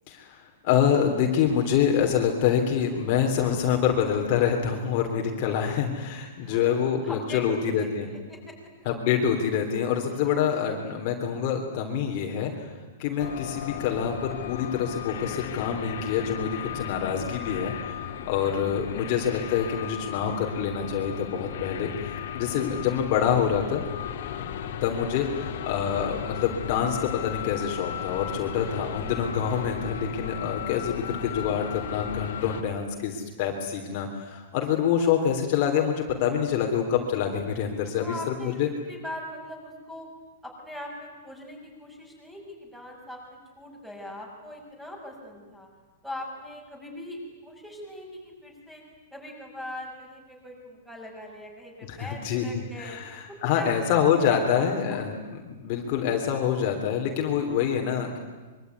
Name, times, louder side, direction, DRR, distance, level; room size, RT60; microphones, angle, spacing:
voice 1, 0.1-8.1 8.8-21.9 22.3-23.8 24.8-38.7 51.8-55.2 55.5-58.2, left 8 dB, 40° left, 2 dB, 3.4 m, -26 dB
voice 2, 6.2-6.7 7.0-8.5 10.7-11.0 18.9-19.3 24.2-24.6 38.0-40.1 40.4-45.7 46.0-48.8 49.1-53.0 53.3-53.7 54.3-55.0, left 1 dB, 5° right, 0 dB, 6.4 m, -41 dB
sound 1, 13.2-32.6, left 9 dB, 60° left, 2.9 m, -35 dB
25.0 x 23.5 x 9.5 m, 1.3 s
supercardioid pair, 165°, 0 cm